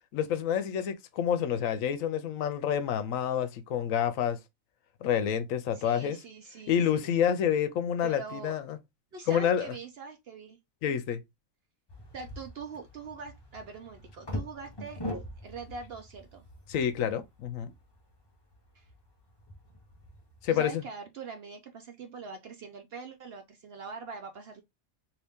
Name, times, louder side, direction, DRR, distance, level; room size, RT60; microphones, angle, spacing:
voice 1, 0.1-4.4 5.0-6.2 6.7-8.8 9.3-9.7 10.8-11.2 16.7-17.7 20.4-20.8, left 9 dB, 75° left, 0.9 m, -28 dB
voice 2, 5.7-7.1 8.0-8.6 9.1-10.6 12.1-15.0 15.4-16.4 18.7-18.9 20.5-24.6, right 4 dB, 60° right, 0.7 m, -43 dB
sound 1, 11.9-20.5, left 1 dB, 25° left, 0.7 m, -43 dB
2.8 x 2.8 x 3.4 m
omnidirectional pair, 1.4 m